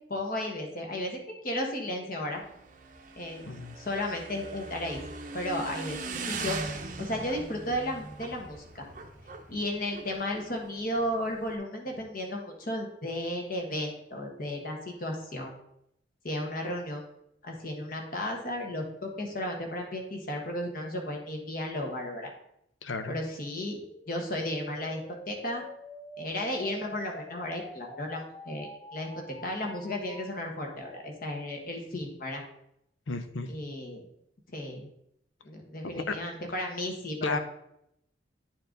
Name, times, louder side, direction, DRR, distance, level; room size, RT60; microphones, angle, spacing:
voice 1, 0.1-1.2 1.4-2.4 3.2-3.5 3.8-5.0 5.3-6.0 6.3-6.6 7.0-8.8 9.5-15.5 16.2-17.0 17.4-22.3 23.1-23.8 24.1-25.0 25.3-25.6 26.2-32.4 33.5-34.1 34.5-34.9 35.4-37.4, left 1 dB, 45° left, 1 dB, 1.4 m, -34 dB
Motorcycle / Engine, 2.3-11.6, right 3 dB, 40° right, 0.7 m, -40 dB
voice 2, 22.8-23.2 33.1-33.5 35.8-36.1 37.2-37.4, left 3 dB, 80° left, 9 dB, 0.7 m, -33 dB
sound 1, 23.8-30.8, left 2 dB, 20° left, 0.4 m, -47 dB
9.7 x 4.4 x 3.9 m, 0.78 s
head